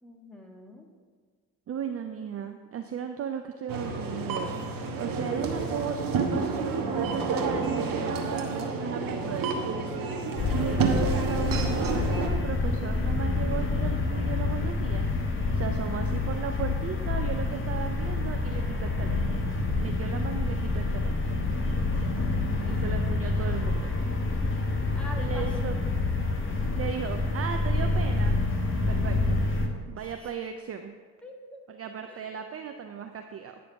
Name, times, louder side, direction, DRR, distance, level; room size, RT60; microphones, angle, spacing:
voice 1, 0.0-0.9 21.9-22.8 24.9-25.8 30.0-30.3 31.2-31.6 32.1-32.3, equal, ahead, 0 dB, 1.8 m, -46 dB
voice 2, 1.7-4.5 5.0-9.7 10.5-19.4 19.8-21.4 22.7-24.0 25.2-25.8 26.7-28.4 28.9-29.4 29.9-30.9 31.7-33.6, right 7 dB, 30° right, 6 dB, 0.6 m, -36 dB
sound 1, 3.7-12.3, right 4 dB, 45° right, 1.2 m, -29 dB
sound 2, 10.4-29.7, left 3 dB, 25° left, 1.4 m, -27 dB
9.4 x 5.1 x 5.8 m, 1.5 s
figure-of-eight pair, 50°, 45 cm